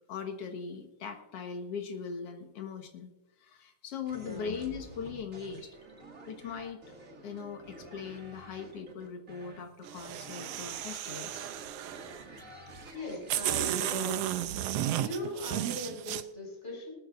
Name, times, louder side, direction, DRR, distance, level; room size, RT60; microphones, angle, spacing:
voice 1, 0.1-3.1 3.4-5.8 6.3-7.0 7.2-11.5, left 6 dB, 60° left, 5 dB, 2.2 m, -40 dB
sound 1, 4.1-14.1, right 2 dB, 30° right, 2.1 m, -50 dB
voice 2, 4.2-4.6 12.9-14.3 15.0-16.9, left 1 dB, 20° left, -1 dB, 5.1 m, -39 dB
sound 2, 9.9-12.2 12.9-13.0 13.3-16.2, right 12 dB, 75° right, 1.6 m, -33 dB
19.0 x 13.5 x 2.6 m, 0.99 s
omnidirectional pair, 3.3 m